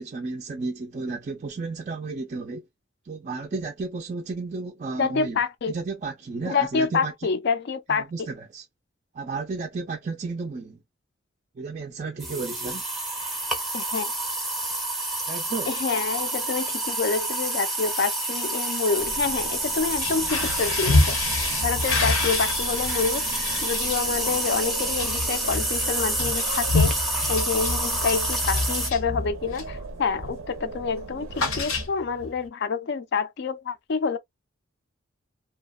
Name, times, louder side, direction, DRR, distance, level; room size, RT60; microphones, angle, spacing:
voice 1, 0.0-2.6 3.0-5.4 5.7-7.1 7.9-8.6 9.1-10.8 11.6-12.8 15.3-15.7, right 3 dB, 35° right, 0.3 m, -33 dB
voice 2, 5.0-5.7 6.5-8.1 13.7-14.1 15.7-21.2 21.6-27.0 27.3-34.2, left 5 dB, 55° left, 0.4 m, -27 dB
sound 1, 12.2-28.9, right 2 dB, ahead, 0.6 m, -28 dB
sound 2, 19.0-31.9, right 3 dB, 90° right, 0.5 m, -40 dB
sound 3, 19.9-29.8 30.2-30.5 30.7-32.3, left 3 dB, 90° left, 0.9 m, -28 dB
2.8 x 2.1 x 2.2 m
head